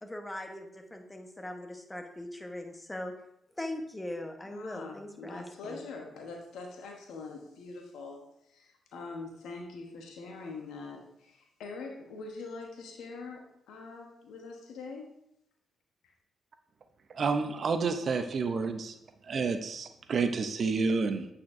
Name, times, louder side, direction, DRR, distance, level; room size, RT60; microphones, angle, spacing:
voice 1, 0.0-3.1 3.6-5.8, left 1 dB, 15° left, 4 dB, 1.1 m, -40 dB
voice 2, 4.4-15.2 16.0-16.1, left 3 dB, 80° left, 2 dB, 1.0 m, -44 dB
voice 3, 17.1-19.0 19.2-21.3, right 4 dB, 60° right, 8 dB, 0.6 m, -29 dB
8.4 x 4.3 x 2.6 m, 0.79 s
supercardioid pair, 50°, 0 cm